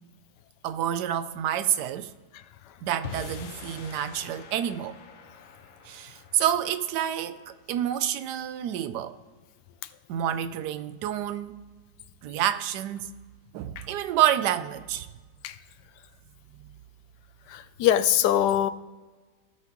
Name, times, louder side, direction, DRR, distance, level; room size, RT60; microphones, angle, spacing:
voice 1, 0.6-2.1 2.8-5.0 5.9-9.2 10.1-11.6 12.2-13.1 13.5-15.1, right 10 dB, 85° right, 1.2 m, -28 dB
sound 1, 3.0-9.4, left 5 dB, 60° left, 1.1 m, -45 dB
voice 2, 17.5-18.7, left 11 dB, 90° left, 1.2 m, -23 dB
16.5 x 5.7 x 3.0 m
omnidirectional pair, 1.8 m